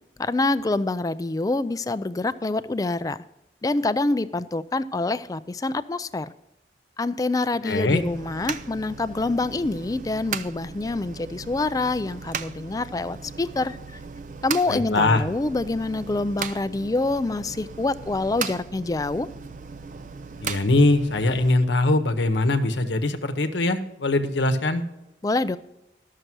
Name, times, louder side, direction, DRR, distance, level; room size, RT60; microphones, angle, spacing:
voice 1, 0.2-3.2 3.6-6.3 7.0-13.8 14.4-19.3 25.2-25.6, left 2 dB, 20° left, 14 dB, 0.3 m, -26 dB
voice 2, 7.6-8.0 14.7-15.2 20.4-24.8, left 2 dB, 80° left, 7 dB, 0.9 m, -22 dB
sound 1, 8.0-21.5, right 6 dB, 45° right, 0.4 m, -37 dB
12.5 x 6.6 x 6.1 m, 0.91 s
head